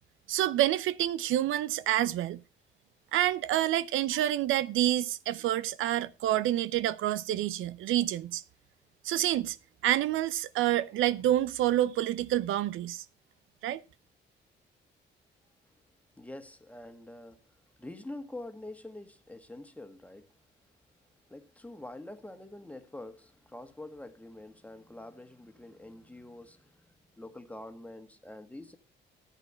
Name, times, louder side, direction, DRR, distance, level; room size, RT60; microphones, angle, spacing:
voice 1, 0.3-2.4 3.1-8.4 9.0-9.6 9.8-13.0 13.6-13.8, right 13 dB, 85° right, 0.6 m, -28 dB
voice 2, 16.2-20.3 21.3-28.8, left 1 dB, 5° left, 1.7 m, -46 dB
13.5 x 8.2 x 4.4 m
cardioid pair, 90°, 20 cm